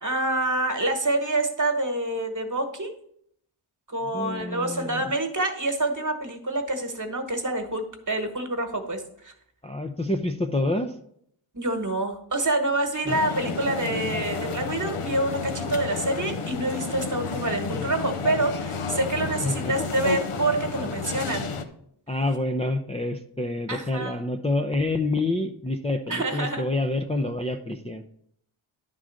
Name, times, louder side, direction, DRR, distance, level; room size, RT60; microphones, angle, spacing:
voice 1, 0.0-2.9 3.9-9.3 11.5-21.5 23.7-24.2 26.1-26.6, right 2 dB, 40° right, 5 dB, 1.3 m, -27 dB
voice 2, 4.0-5.1 9.6-10.9 13.1-13.2 19.2-19.7 22.1-28.0, left 2 dB, 15° left, 3 dB, 0.5 m, -27 dB
sound 1, 13.1-21.7, left 4 dB, 85° left, 0.9 m, -31 dB
10.5 x 3.8 x 6.3 m, 0.68 s
wide cardioid pair, 75°, 49 cm